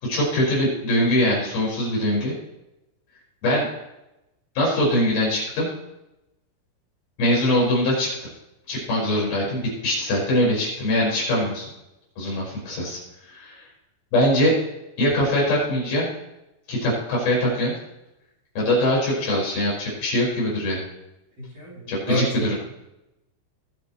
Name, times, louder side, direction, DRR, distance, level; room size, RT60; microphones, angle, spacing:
voice 1, 0.0-2.4 3.4-3.7 4.6-5.7 7.2-8.1 8.7-11.7 12.2-13.0 13.3-13.6 14.1-14.5 15.0-16.1 16.7-17.7 18.5-20.8 21.9-22.6, left 1 dB, 50° left, -5 dB, 6.7 m, -22 dB
voice 2, 21.4-21.7 22.1-22.5, equal, 35° right, -6 dB, 3.6 m, -26 dB
20.5 x 8.7 x 3.2 m, 0.91 s
omnidirectional pair, 5.7 m